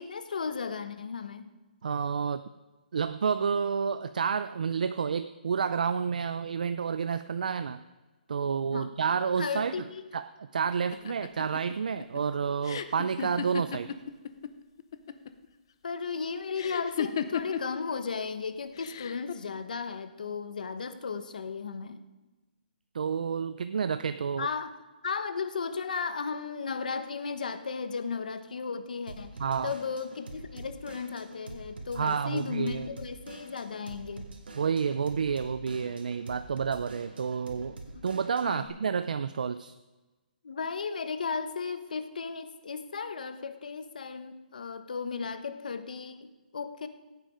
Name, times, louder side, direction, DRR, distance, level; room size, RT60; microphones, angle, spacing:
voice 1, 0.0-1.5 8.7-8.9 9.4-10.0 15.8-22.0 24.4-24.7 25.0-29.3 29.6-34.3 37.9-38.0 38.4-38.7 40.4-46.9, left 5 dB, 55° left, 11 dB, 1.1 m, -35 dB
voice 2, 1.8-2.4 2.9-7.8 8.3-9.7 10.1-13.9 22.9-24.5 29.4-29.7 31.9-32.9 34.6-37.8 38.0-39.7, right 6 dB, 55° right, 12 dB, 0.4 m, -30 dB
sound 1, 10.9-14.5 14.8-15.5 16.6-17.8 18.8-19.3, left 8 dB, 30° left, 0.5 m, -35 dB
Drum kit / Drum, 29.1-38.7, right 2 dB, 80° right, 2.5 m, -46 dB
16.5 x 9.2 x 5.0 m, 1.2 s
hypercardioid pair, 180°, 5 cm